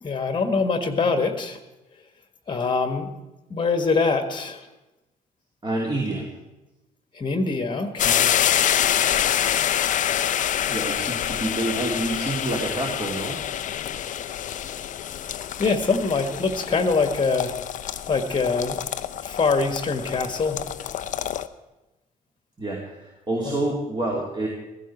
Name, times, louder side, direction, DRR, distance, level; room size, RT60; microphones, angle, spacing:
voice 1, 0.0-1.6 2.5-3.1 3.5-4.6 7.2-8.3 15.6-17.5 18.1-18.8 19.2-20.6 23.5-23.7, left 4 dB, 25° left, 8 dB, 1.6 m, -24 dB
voice 2, 5.6-6.3 10.7-13.4 22.6-24.5, right 2 dB, 20° right, -2 dB, 2.6 m, -27 dB
sound 1, 8.0-21.5, left 10 dB, 40° left, 0.7 m, -26 dB
15.5 x 15.0 x 4.5 m, 1.0 s
figure-of-eight pair, 55°, 20 cm